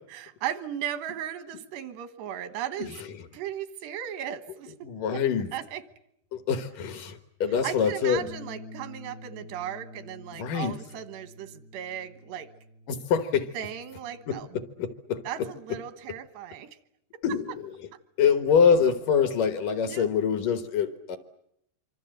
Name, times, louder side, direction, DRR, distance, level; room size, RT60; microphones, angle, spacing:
voice 1, 0.1-2.9 3.3-4.9 5.5-5.8 7.6-12.5 13.5-14.5 15.3-16.7 19.9-20.1, right 10 dB, 85° right, 11 dB, 3.4 m, -36 dB
voice 2, 2.8-3.2 4.7-5.5 6.3-8.2 10.3-10.8 12.9-13.6 14.3-15.5 17.2-17.9 18.2-21.2, left 7 dB, 65° left, 9 dB, 2.5 m, -25 dB
Bass guitar, 8.2-14.4, left 2 dB, 85° left, 3.5 m, -48 dB
25.5 x 25.0 x 7.8 m, 0.77 s
omnidirectional pair, 4.7 m